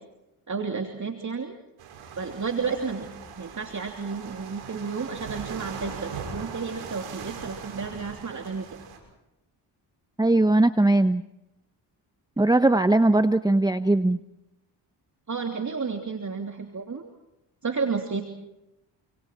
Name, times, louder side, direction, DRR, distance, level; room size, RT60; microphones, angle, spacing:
voice 1, 0.5-1.6 2.2-3.1 3.4-8.7 15.3-17.0 17.6-18.2, right 5 dB, 35° right, 3 dB, 3.1 m, -31 dB
sound 1, 1.8-9.0, right 6 dB, 80° right, 6.1 m, -40 dB
voice 2, 10.2-11.2 12.4-14.2, right 2 dB, 10° right, 10 dB, 1.0 m, -20 dB
29.0 x 27.0 x 4.6 m, 0.89 s
supercardioid pair, 60°, 48 cm